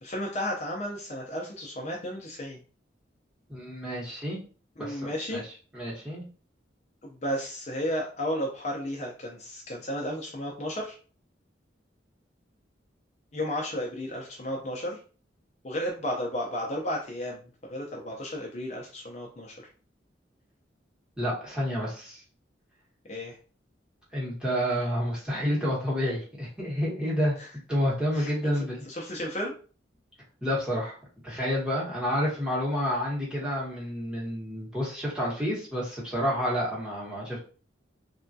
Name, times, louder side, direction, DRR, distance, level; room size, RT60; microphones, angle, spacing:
voice 1, 0.0-2.6 4.8-5.4 7.0-11.0 13.3-15.0 15.6-19.6 23.1-23.4 27.4-27.5 28.1-28.5 28.9-29.5, equal, 35° left, -1 dB, 0.5 m, -33 dB
voice 2, 3.5-4.4 4.8-5.4 5.7-6.2 21.2-22.2 24.1-27.4 27.7-28.8 30.4-31.0 31.2-37.4, equal, 5° right, -6 dB, 1.0 m, -29 dB
3.4 x 2.2 x 2.6 m, 0.38 s
head